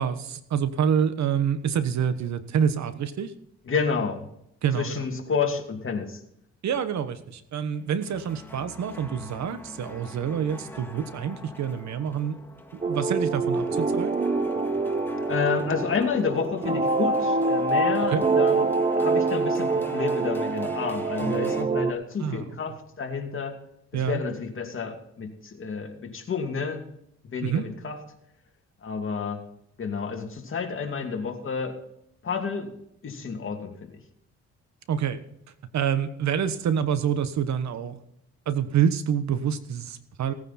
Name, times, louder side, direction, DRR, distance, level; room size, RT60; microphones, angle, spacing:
voice 1, 0.0-3.3 4.6-5.0 6.6-12.4 12.7-14.1 18.1-18.2 22.2-22.5 23.9-24.2 27.4-27.7 34.9-35.2 35.7-38.0 38.5-40.3, right 8 dB, 65° right, 12 dB, 1.2 m, -27 dB
voice 2, 3.7-4.2 4.7-6.2 15.3-18.7 19.0-23.5 23.9-26.8 27.2-28.0 28.8-29.4 29.8-31.7 32.2-32.7 33.0-34.0, left 5 dB, 45° left, 3 dB, 2.6 m, -30 dB
sound 1, 7.7-21.6, left 1 dB, 5° left, 1.8 m, -42 dB
sound 2, 12.8-21.9, right 3 dB, 20° right, 0.9 m, -25 dB
17.5 x 9.6 x 4.3 m, 0.75 s
cardioid pair, 90°, 30 cm